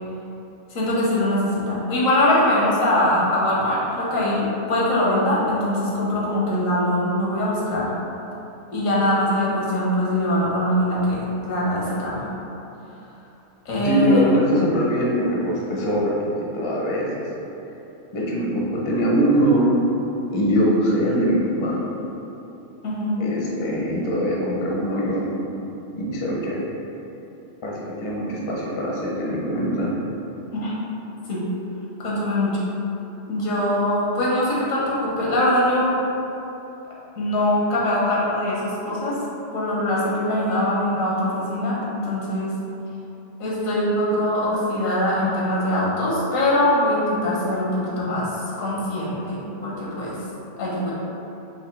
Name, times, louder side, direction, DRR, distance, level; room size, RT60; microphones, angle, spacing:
voice 1, 0.7-7.9 8.7-12.3 13.6-14.2 22.8-23.2 30.5-30.7 31.3-31.4 32.0-32.6 33.2-36.0 37.2-39.2 39.5-42.5 43.4-48.3 48.6-50.2 50.6-50.9, left 1 dB, 85° left, -6 dB, 1.4 m, -22 dB
voice 2, 13.8-17.1 18.1-19.7 20.3-21.8 23.2-25.3 25.9-26.6 27.6-29.9, equal, 30° left, -4 dB, 0.5 m, -22 dB
5.6 x 2.6 x 3.2 m, 3.0 s
omnidirectional pair, 1.4 m